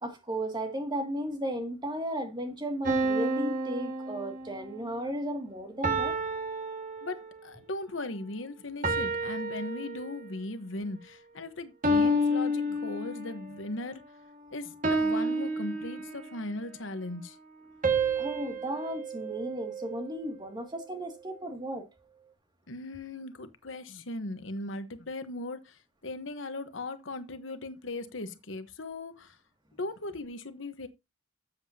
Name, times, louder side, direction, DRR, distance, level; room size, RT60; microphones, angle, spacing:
voice 1, 0.0-6.2 18.2-21.9, right 1 dB, 25° right, 2.3 m, -35 dB
sound 1, 2.8-4.8 5.8-7.5 8.8-10.4 11.8-13.5 14.8-16.4 17.8-20.2, right 1 dB, 45° right, 1.9 m, -30 dB
voice 2, 7.0-14.0 14.5-17.4 22.7-29.4 29.8-30.9, left 2 dB, 70° left, 1.2 m, -38 dB
13.0 x 7.7 x 2.8 m
head